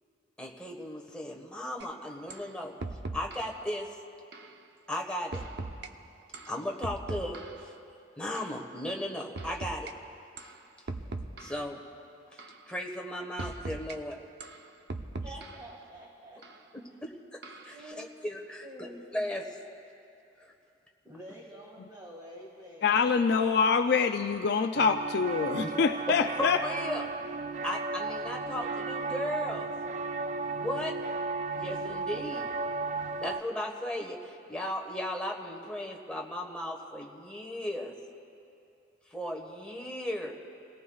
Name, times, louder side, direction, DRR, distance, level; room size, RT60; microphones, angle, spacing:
voice 1, 0.4-2.8 3.1-3.9 4.9-5.4 6.4-7.7 8.2-9.9 11.4-11.8 12.3-12.4 12.7-14.2 16.7-17.1 17.6-18.9 19.1-19.5 20.4-20.5 25.6-25.7 26.4-27.1 27.6-29.7 30.6-31.0 31.5-32.5 33.2-37.9 39.1-40.3, left 1 dB, 5° left, -1 dB, 1.4 m, -36 dB
sound 1, 1.8-1.9 2.3-2.5 2.8-3.6 4.3-4.5 5.3-5.9 6.3-7.7 8.4-8.5 9.4-9.9 10.4-10.6 10.9-11.7 12.4-12.6 13.4-14.0 14.4-15.7 16.4-16.6 17.4-17.8, right 3 dB, 60° right, 0.8 m, -40 dB
voice 2, 15.2-16.4 17.7-18.2 18.6-19.0 21.1-23.7, right 1 dB, 20° right, -5 dB, 2.0 m, -48 dB
voice 3, 22.8-26.6, left 5 dB, 55° left, 6 dB, 0.4 m, -25 dB
sound 2, 24.7-33.4, right 3 dB, 40° right, 0.4 m, -34 dB
29.0 x 17.5 x 2.4 m, 2.6 s
head